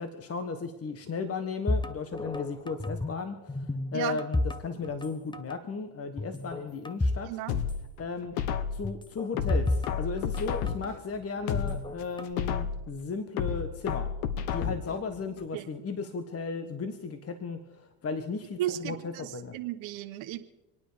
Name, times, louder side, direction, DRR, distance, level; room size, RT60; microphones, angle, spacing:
voice 1, 0.0-3.4 3.9-7.4 8.0-8.3 8.7-14.1 14.5-19.6, left 4 dB, 30° left, 9 dB, 1.4 m, -35 dB
sound 1, 1.7-3.2 3.5-5.1 5.3-5.6 6.2-7.3 7.6-7.7 8.8-10.9 11.5-12.3, left 2 dB, 10° left, 0.7 m, -31 dB
voice 2, 7.3-7.6 15.5-15.6 18.6-20.4, right 13 dB, 70° right, 6 dB, 1.2 m, -34 dB
sound 2, 7.5-8.9 9.4-11.0 11.4-12.9 13.4-15.0 15.4-15.5, left 7 dB, 80° left, 1.3 m, -31 dB
26.5 x 9.4 x 5.1 m, 1.0 s
supercardioid pair, 95°, 47 cm